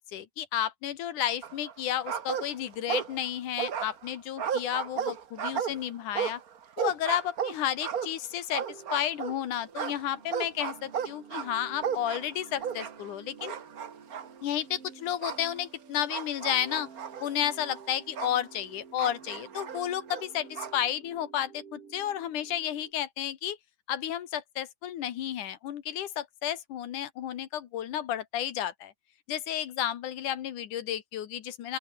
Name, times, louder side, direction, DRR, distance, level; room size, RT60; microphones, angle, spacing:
voice 1, 0.0-6.4 6.8-13.6 14.4-16.9 17.2-23.6 23.9-28.9 29.3-31.8, left 11 dB, 80° left, 3.0 m, -32 dB
sound 1, 1.4-3.3 3.6-9.4 9.7-13.1 13.4-14.3 15.2-15.4 16.1-18.4 19.0-20.8, right 8 dB, 75° right, 0.8 m, -34 dB
sound 2, 8.6-22.9, right 6 dB, 45° right, 3.6 m, -51 dB
open air
omnidirectional pair, 3.6 m